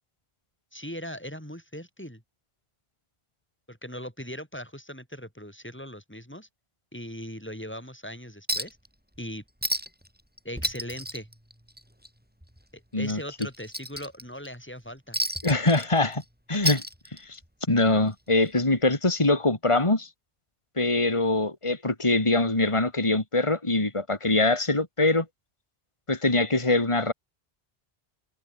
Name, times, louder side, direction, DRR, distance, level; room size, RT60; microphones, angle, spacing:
voice 1, 0.7-2.2 3.7-6.5 6.9-8.8 9.2-9.4 10.4-11.3 12.7-15.2, equal, 10° left, 7.7 m, -39 dB
Chink clink, 8.5-8.9 9.2-9.3 9.6-10.1 10.4-12.1 12.4-12.6 13.0-14.5 15.1-16.2 16.5-17.5 18.6-18.7, equal, 10° right, 6.0 m, -31 dB
voice 2, 15.4-16.2 16.5-16.8 17.3-17.4 17.7-20.1 20.8-25.2 26.1-27.1, left 2 dB, 25° left, 2.8 m, -23 dB
omnidirectional pair, 1.1 m